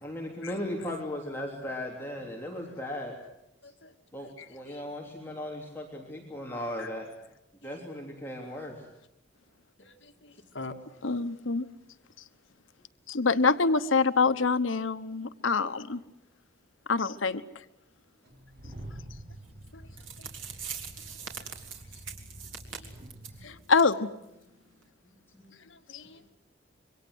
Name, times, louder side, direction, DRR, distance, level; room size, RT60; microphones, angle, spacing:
voice 1, 0.0-3.2 3.6-3.7 4.1-7.1 7.6-8.9 20.0-20.1 22.1-22.9 23.4-23.6 25.3-25.6, left 1 dB, 10° left, -1 dB, 3.4 m, -38 dB
voice 2, 9.8-10.8 19.7-19.8 20.2-20.3 22.7-22.9 23.4-23.5 25.7-26.3, left 2 dB, 65° left, 5 dB, 2.4 m, -46 dB
voice 3, 11.0-11.6 13.1-16.0 16.9-17.4 23.4-24.1 25.9-26.0, left 4 dB, 90° left, 10 dB, 1.2 m, -25 dB
sound 1, 18.2-23.5, right 1 dB, 50° right, 7.1 m, -47 dB
sound 2, 19.7-19.8 20.0-23.4 23.7-23.9 24.2-24.3 24.8-24.9, right 7 dB, 85° right, 3.7 m, -42 dB
27.0 x 23.5 x 8.0 m, 0.88 s
head